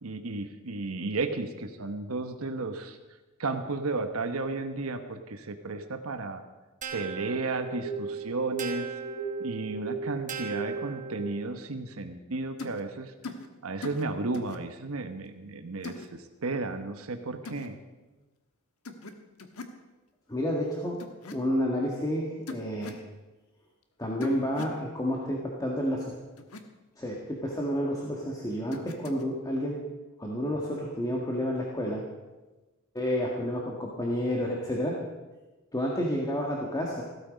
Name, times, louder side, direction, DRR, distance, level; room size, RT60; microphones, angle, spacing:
voice 1, 0.0-3.0 3.4-6.4 6.9-8.9 9.4-13.1 13.6-17.8, right 3 dB, 75° right, 7 dB, 1.1 m, -33 dB
sound 1, 6.8-11.6, right 5 dB, 35° right, 1.4 m, -36 dB
sound 2, 12.6-12.8 13.2-13.5 13.8-14.1 14.3-14.6 15.8-16.1 17.5-17.7 18.9-19.1 19.4-19.8 21.0-21.4 22.5-23.0 24.2-24.8 26.4-26.6 28.7-29.2, left 3 dB, 80° left, 1.4 m, -40 dB
voice 2, 20.3-21.0 21.3-23.0 24.0-26.1 27.0-29.8 30.2-32.1 32.9-35.0 35.7-37.0, equal, 15° left, -2 dB, 1.7 m, -30 dB
16.0 x 13.0 x 5.2 m, 1.2 s
head